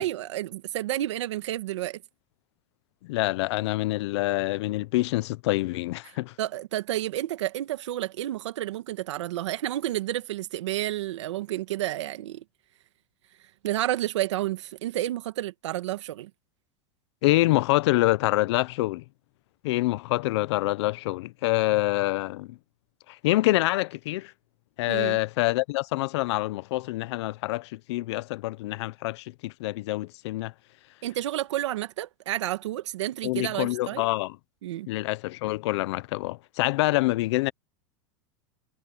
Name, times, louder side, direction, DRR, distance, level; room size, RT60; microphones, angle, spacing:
voice 1, 0.0-2.0 6.4-12.4 13.6-16.3 24.9-25.2 31.0-34.0 34.6-34.9, right 14 dB, 90° right, 1.7 m, -30 dB
voice 2, 3.0-6.3 17.2-19.0 19.6-22.6 23.1-24.3 24.8-30.5 33.2-34.4 34.9-37.5, left 19 dB, 70° left, 0.8 m, -26 dB
supercardioid pair, 135°, 15 cm